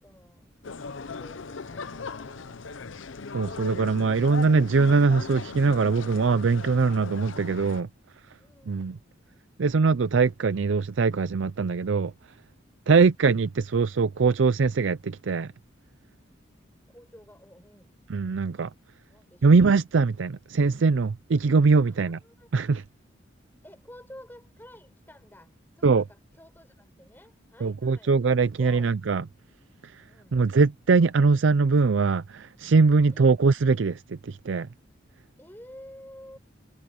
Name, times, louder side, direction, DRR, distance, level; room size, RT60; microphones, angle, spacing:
voice 1, 0.0-0.5 1.0-2.7 8.4-9.3 16.9-18.0 19.1-19.6 21.8-22.5 23.6-28.2 28.5-29.0 30.1-30.4 33.1-33.4 35.4-36.4, equal, 10° left, 5.0 m, -51 dB
sound 1, 0.6-7.8, left 4 dB, 85° left, 0.7 m, -38 dB
voice 2, 3.3-7.9 8.7-9.0 9.6-12.1 12.9-15.5 18.1-18.7 19.4-22.2 22.5-22.8 25.8-26.0 27.6-29.2 30.3-34.7, right 4 dB, 80° right, 0.5 m, -22 dB
head